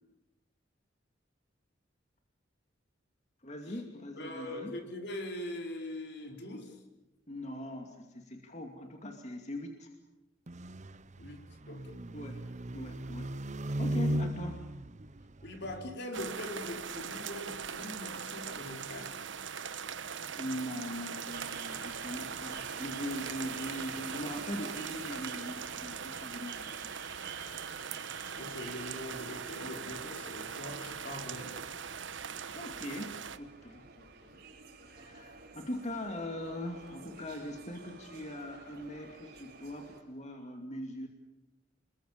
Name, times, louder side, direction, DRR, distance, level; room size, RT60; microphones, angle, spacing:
voice 1, 3.4-4.7 7.3-9.9 12.1-12.4 12.7-13.4 13.8-14.7 20.4-26.6 26.8-26.9 32.5-34.4 34.8-41.1, left 1 dB, 40° left, 3 dB, 2.5 m, -41 dB
voice 2, 4.1-6.8 11.2-12.1 15.4-19.2 28.4-31.6, left 1 dB, 65° left, 4 dB, 4.6 m, -42 dB
sound 1, 10.5-16.0, right 1 dB, 40° right, 0.8 m, -37 dB
sound 2, 16.1-33.4, right 7 dB, 80° right, 1.2 m, -41 dB
sound 3, 21.3-40.0, right 5 dB, 60° right, 4.9 m, -51 dB
27.5 x 22.0 x 8.9 m, 0.98 s
head